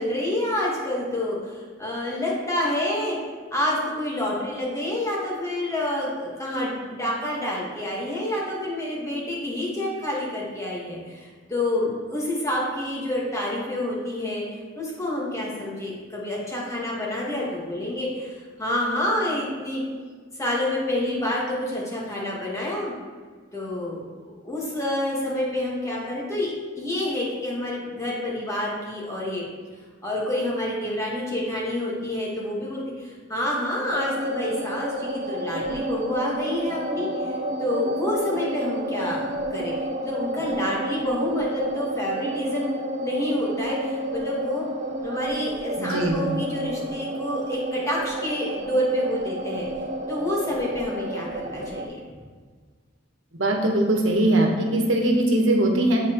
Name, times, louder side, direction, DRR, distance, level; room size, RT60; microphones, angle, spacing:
voice 1, 0.0-3.2 3.5-19.8 20.4-22.9 23.5-29.4 30.0-39.7 40.0-42.7 43.0-44.7 45.0-49.7 50.1-52.0, left 1 dB, 15° left, -5 dB, 1.6 m, -28 dB
sound 1, 33.9-51.9, right 1 dB, 40° right, 0.5 m, -31 dB
voice 2, 45.8-46.4 53.4-56.0, right 1 dB, 90° right, 0 dB, 1.2 m, -21 dB
10.0 x 4.2 x 3.0 m, 1.5 s
head